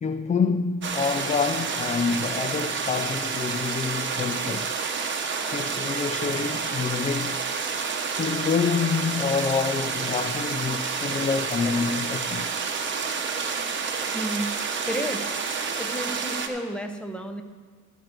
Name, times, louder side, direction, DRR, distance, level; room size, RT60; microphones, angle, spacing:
voice 1, 0.0-4.8 5.5-7.4 8.1-12.6, left 5 dB, 25° left, 0.4 m, -27 dB
sound 1, 0.8-16.5, right 5 dB, 40° right, 1.1 m, -29 dB
sound 2, 9.1-14.5, right 3 dB, 20° right, 1.2 m, -49 dB
voice 2, 14.1-15.4 15.8-17.4, right 1 dB, 5° left, 1.0 m, -32 dB
12.5 x 4.5 x 7.9 m
cardioid pair, 90°, 30 cm